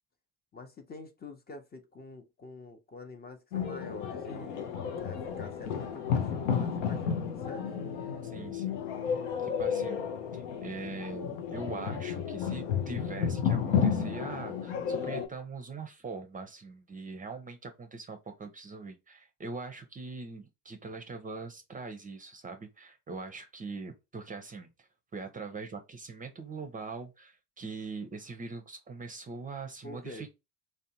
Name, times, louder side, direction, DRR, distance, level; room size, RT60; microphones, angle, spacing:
voice 1, 0.5-7.7 29.8-30.3, left 3 dB, 30° left, 0.6 m, -46 dB
sound 1, 3.5-15.3, left 7 dB, 85° left, 0.5 m, -32 dB
voice 2, 8.2-10.0 10.3-30.3, right 4 dB, 25° right, 0.5 m, -42 dB
2.6 x 2.1 x 2.7 m
hypercardioid pair, 60°, 34 cm